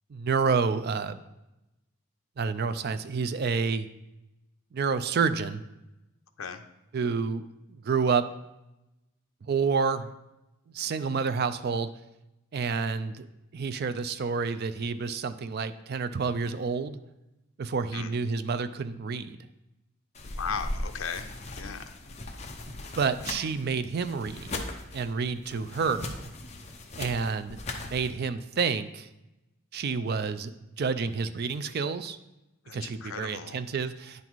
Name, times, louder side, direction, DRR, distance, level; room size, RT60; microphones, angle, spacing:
voice 1, 0.1-1.2 2.4-3.9 4.7-5.6 6.9-8.3 9.4-10.1 10.7-11.9 12.5-13.3 13.5-17.0 17.6-19.4 22.7-24.6 24.9-26.3 27.0-29.1 29.7-32.2 32.7-34.2, right 5 dB, 45° right, 12 dB, 0.4 m, -29 dB
sound 1, 20.1-28.1, left 2 dB, 30° left, 0.7 m, -39 dB
voice 2, 20.4-21.3 21.5-22.0 32.7-33.6, left 6 dB, 70° left, 8 dB, 0.6 m, -36 dB
9.6 x 4.0 x 4.5 m, 0.94 s
head